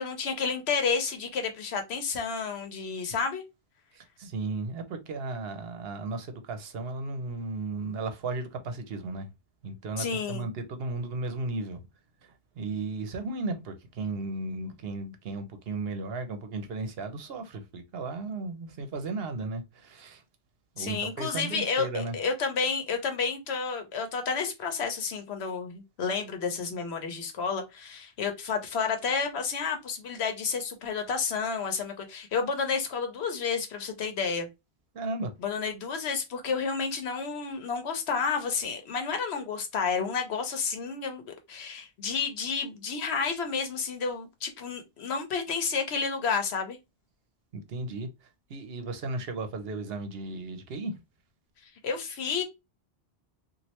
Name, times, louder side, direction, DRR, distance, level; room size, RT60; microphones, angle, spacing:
voice 1, 0.0-3.4 10.0-10.5 20.8-34.5 35.4-46.8 51.8-52.4, left 5 dB, 90° left, 1.0 m, -30 dB
voice 2, 3.9-9.3 9.6-11.8 12.2-20.2 20.8-22.2 34.9-35.3 47.5-51.0, right 3 dB, 70° right, 0.9 m, -35 dB
3.1 x 2.5 x 2.8 m
omnidirectional pair, 1.1 m